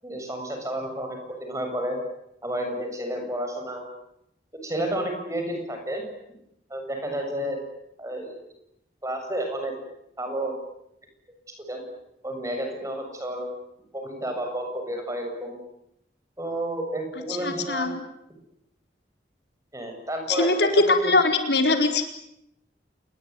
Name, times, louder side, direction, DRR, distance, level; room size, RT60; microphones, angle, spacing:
voice 1, 0.0-2.0 2.4-3.8 4.6-6.0 6.7-7.6 8.0-8.4 9.0-9.7 10.2-10.5 11.6-11.8 12.2-13.5 13.9-15.6 16.4-17.9 19.7-20.5 20.9-21.0, right 1 dB, 20° right, 4 dB, 7.4 m, -31 dB
voice 2, 17.3-18.0 20.3-22.0, left 2 dB, 75° left, 5 dB, 4.3 m, -22 dB
28.0 x 21.5 x 9.7 m, 0.81 s
head